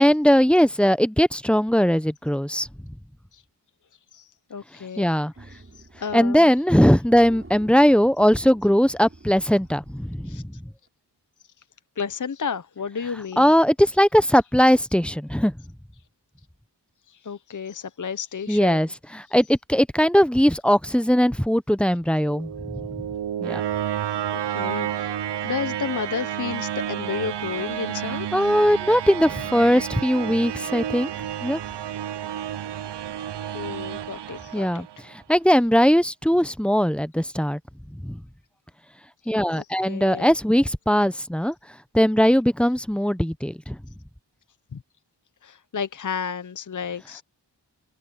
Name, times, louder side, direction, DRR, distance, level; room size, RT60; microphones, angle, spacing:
voice 1, 0.0-2.7 5.0-5.3 6.1-10.4 13.4-15.5 18.5-23.0 23.4-23.6 28.3-31.1 31.4-31.6 34.5-37.6 38.0-38.2 39.3-41.5 41.9-43.8, equal, 5° left, 0.9 m, -20 dB
voice 2, 4.1-5.1 5.5-6.5 10.3-10.4 12.0-13.5 17.1-18.8 24.3-28.6 33.5-34.8 39.5-40.3 44.7-44.8 45.4-47.2, left 6 dB, 45° left, 0.9 m, -32 dB
sound 1, 5.4-6.4 6.6-6.7 7.0-10.4, right 2 dB, 30° right, 4.8 m, -47 dB
sound 2, 22.1-35.1, right 10 dB, 70° right, 0.6 m, -31 dB
open air
cardioid pair, 50°, 43 cm